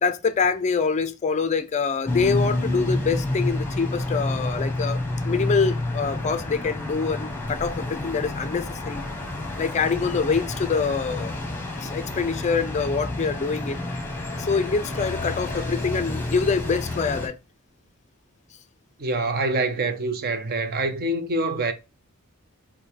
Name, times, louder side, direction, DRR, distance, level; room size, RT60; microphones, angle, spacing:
voice 1, 0.0-5.0 5.2-9.0 9.6-11.3 11.8-13.8 14.4-17.4, left 5 dB, 30° left, 0.4 m, -25 dB
sound 1, 2.1-17.3, left 2 dB, 10° left, 1.0 m, -29 dB
voice 2, 19.0-21.7, right 2 dB, 45° right, 0.6 m, -25 dB
5.2 x 2.1 x 4.3 m
head